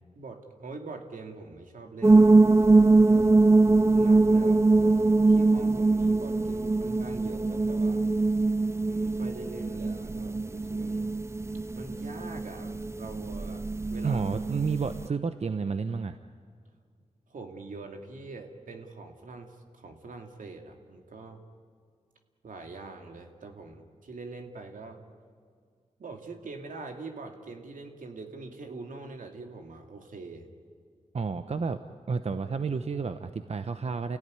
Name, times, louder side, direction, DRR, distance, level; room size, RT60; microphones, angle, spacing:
voice 1, 0.1-3.3 3.9-5.0 5.3-8.0 8.8-11.1 11.7-14.2 17.3-21.4 22.4-25.0 26.0-30.5, right 3 dB, 85° right, 3 dB, 2.6 m, -44 dB
sound 1, 2.0-15.1, right 3 dB, 20° right, 0.6 m, -22 dB
voice 2, 14.0-16.2 31.1-31.8 32.1-34.2, right 5 dB, 55° right, 9 dB, 0.9 m, -30 dB
29.5 x 17.0 x 9.7 m, 2.1 s
cardioid pair, 70°, 13 cm